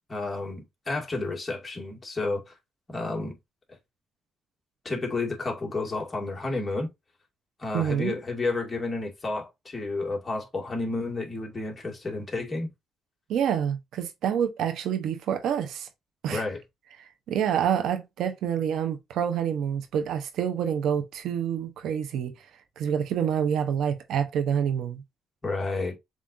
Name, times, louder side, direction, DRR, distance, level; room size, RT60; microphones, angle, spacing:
voice 1, 0.1-2.6 2.9-3.4 3.7-3.8 4.8-6.9 7.6-12.7 16.3-16.6 25.4-26.0, left 3 dB, 25° left, 1.8 m, -31 dB
voice 2, 7.7-8.2 13.3-15.9 16.2-16.4 17.0-22.3 22.8-25.0, right 8 dB, 80° right, 0.7 m, -27 dB
7.3 x 2.5 x 2.5 m
cardioid pair, 90°, 0 cm